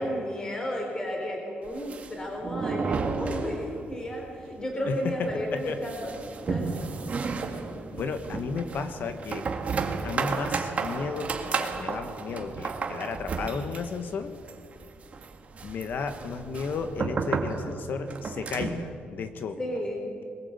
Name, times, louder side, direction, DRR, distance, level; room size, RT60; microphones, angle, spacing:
voice 1, 0.0-6.2 6.5-6.7 19.6-20.1, equal, 20° left, 1 dB, 3.7 m, -33 dB
sound 1, 1.6-4.0 4.3-4.4 4.7-4.8 5.2-18.9, right 4 dB, 35° right, 2.0 m, -33 dB
voice 2, 4.9-5.8 7.5-7.6 7.9-9.5 10.0-14.4 15.6-19.6, left 5 dB, 55° left, 8 dB, 1.3 m, -33 dB
22.5 x 21.0 x 8.1 m, 2.4 s
cardioid pair, 160°, 4 cm